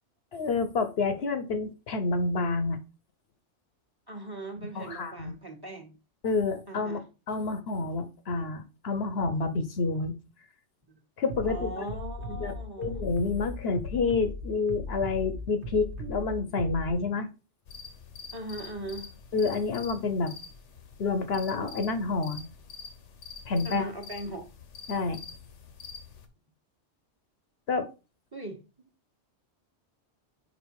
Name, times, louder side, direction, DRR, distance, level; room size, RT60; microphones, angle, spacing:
voice 1, 0.3-2.8 4.7-5.3 6.2-7.0 7.3-10.1 11.2-11.8 12.3-17.3 19.3-20.3 21.0-22.5 23.5-23.9 24.9-25.2 27.7-27.9, left 4 dB, 65° left, 9 dB, 1.0 m, -29 dB
voice 2, 4.1-6.0 6.7-7.0 10.9-11.0 11.5-13.0 18.3-19.1 23.6-24.5 28.3-28.9, right 1 dB, 20° right, 4 dB, 1.2 m, -39 dB
Bass drum, 11.3-16.9, left 1 dB, 75° right, 1.4 m, -38 dB
sound 1, 17.7-26.3, left 5 dB, 90° left, 1.2 m, -46 dB
5.2 x 4.9 x 4.6 m, 0.30 s
omnidirectional pair, 1.2 m